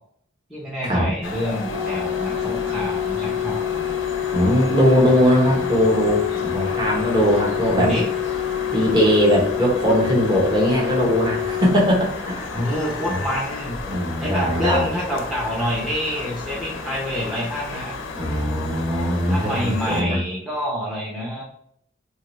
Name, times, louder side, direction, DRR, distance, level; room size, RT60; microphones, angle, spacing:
voice 1, 0.5-3.6 7.7-8.1 12.5-13.8 14.2-17.9 19.3-21.4, equal, ahead, -6 dB, 0.5 m, -27 dB
sound 1, 1.2-20.0, left 4 dB, 70° left, 0.4 m, -33 dB
Organ, 1.6-12.5 13.6-13.8, left 11 dB, 75° right, 1.3 m, -27 dB
voice 2, 4.3-7.9 8.7-12.3 13.1-13.2 13.9-14.9 18.1-20.2, equal, 20° right, -3 dB, 0.8 m, -20 dB
2.9 x 2.3 x 3.0 m, 0.68 s
head